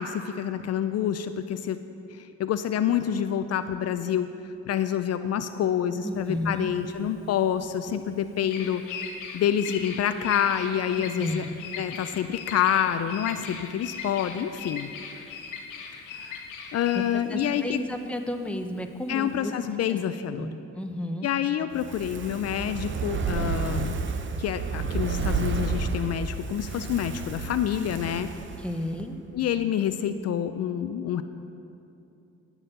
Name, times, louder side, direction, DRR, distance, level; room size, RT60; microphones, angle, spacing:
voice 1, 0.0-1.8 2.1-4.3 4.7-8.8 9.3-11.4 11.8-14.9 16.1-16.4 16.7-17.8 19.1-20.5 21.2-24.0 24.4-28.3 29.3-31.2, left 9 dB, 55° left, 10 dB, 0.4 m, -27 dB
voice 2, 6.0-6.7 11.2-11.5 16.9-19.5 19.9-20.0 20.4-21.3 28.6-29.2, left 1 dB, 5° left, 5 dB, 0.7 m, -32 dB
Bird vocalization bird call bird song, 6.1-19.4, left 6 dB, 85° left, 1.1 m, -39 dB
Fire, 21.7-29.1 29.4-29.5, right 5 dB, 40° right, 0.7 m, -31 dB
11.0 x 6.0 x 6.5 m, 2.7 s
cardioid pair, 90°, 30 cm